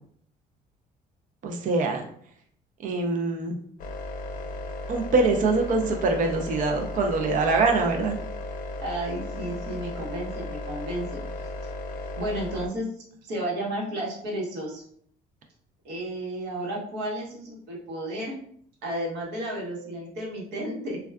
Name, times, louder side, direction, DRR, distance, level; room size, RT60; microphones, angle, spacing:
voice 1, 1.4-2.0 2.8-3.6 4.9-8.2, right 3 dB, 50° right, 3 dB, 0.5 m, -24 dB
sound 1, 3.8-12.7, left 2 dB, 55° left, 0.4 m, -35 dB
voice 2, 8.8-11.2 12.2-12.8 13.3-14.8 15.8-18.3 18.8-21.0, right 1 dB, 80° right, -3 dB, 1.1 m, -32 dB
3.4 x 2.3 x 2.2 m, 0.62 s
cardioid pair, 110°, 17 cm